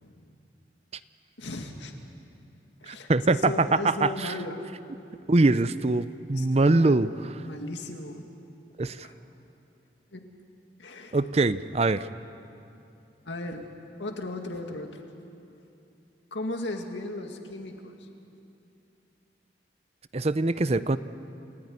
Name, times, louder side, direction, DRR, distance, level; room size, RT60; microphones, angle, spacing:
voice 1, 0.0-0.3 1.4-2.0 2.8-4.7 6.3-7.1 7.5-8.3 8.8-9.2 10.1-10.3 10.8-11.2 13.2-13.7 14.0-15.0 16.3-18.1, left 2 dB, 90° left, 3 dB, 2.3 m, -36 dB
voice 2, 2.9-3.7 4.0-4.3 5.3-7.1 8.8-9.1 11.1-12.0 20.1-21.0, right 2 dB, 35° right, 14 dB, 0.6 m, -23 dB
29.0 x 15.0 x 9.6 m, 2.7 s
head